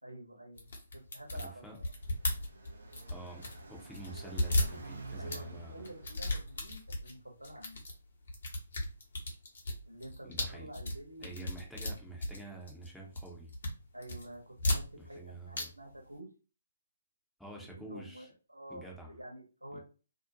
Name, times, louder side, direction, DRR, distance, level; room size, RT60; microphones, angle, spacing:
voice 1, 0.0-1.9 5.2-7.8 9.9-11.6 11.8-12.2 13.9-16.3 17.6-19.8, right 1 dB, 80° right, 0 dB, 1.0 m, -49 dB
sound 1, 0.6-3.6 3.9-5.4 5.8-7.1 7.4-7.9 8.3-12.9 13.1-13.7 14.0-15.2 15.5-15.7 15.9-16.0, left 1 dB, 55° left, 0.9 m, -35 dB
voice 2, 1.3-1.8 3.1-3.4 3.7-5.9 10.2-10.7 11.2-13.5 15.0-15.7 17.4-18.3 18.7-19.1 19.7-19.8, right 2 dB, ahead, -2 dB, 0.6 m, -48 dB
Car passing by, 1.3-6.8, right 2 dB, 60° right, 0.4 m, -49 dB
2.5 x 2.1 x 2.7 m, 0.35 s
figure-of-eight pair, 135°, 0 cm